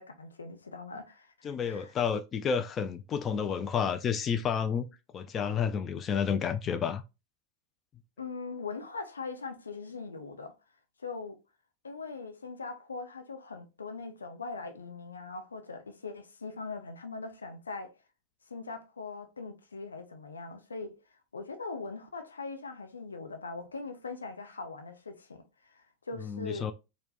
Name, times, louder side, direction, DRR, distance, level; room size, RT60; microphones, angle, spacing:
voice 1, 0.0-1.9 8.2-10.5 11.0-11.4 11.8-17.9 18.5-21.0 21.3-26.7, left 4 dB, 75° left, 0.7 m, -41 dB
voice 2, 1.4-4.9 5.1-7.0 26.2-26.7, left 7 dB, 25° left, 0.3 m, -30 dB
4.4 x 2.1 x 4.0 m
figure-of-eight pair, 90°, 0 cm